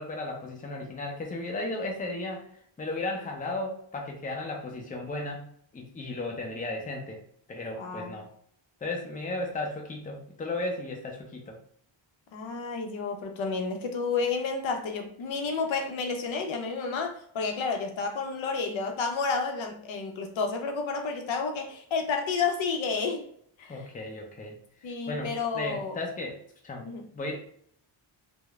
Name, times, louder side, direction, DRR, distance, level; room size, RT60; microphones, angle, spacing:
voice 1, 0.0-2.4 2.8-5.4 5.7-7.2 7.5-8.3 8.8-11.6 23.7-24.6 25.1-26.4 26.6-26.9 27.1-27.4, left 2 dB, 15° left, 1 dB, 0.5 m, -35 dB
voice 2, 7.8-8.2 12.3-23.3 23.6-23.8 24.8-26.0 26.8-27.1, left 4 dB, 65° left, 4 dB, 0.6 m, -31 dB
2.9 x 2.0 x 2.3 m, 0.65 s
cardioid pair, 95°, 49 cm